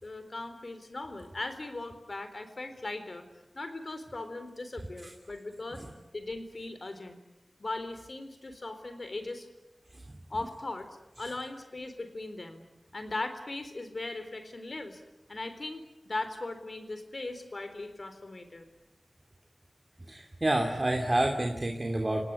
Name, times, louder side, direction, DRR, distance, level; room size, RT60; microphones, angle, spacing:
voice 1, 0.0-3.2 3.5-5.9 6.1-7.2 7.6-9.5 10.3-10.9 11.2-12.6 12.9-15.0 15.3-18.7, left 2 dB, 60° left, 9 dB, 4.0 m, -39 dB
voice 2, 20.1-22.2, right 1 dB, 35° right, 3 dB, 2.9 m, -28 dB
28.5 x 18.0 x 9.8 m, 0.96 s
cardioid pair, 40°, 0 cm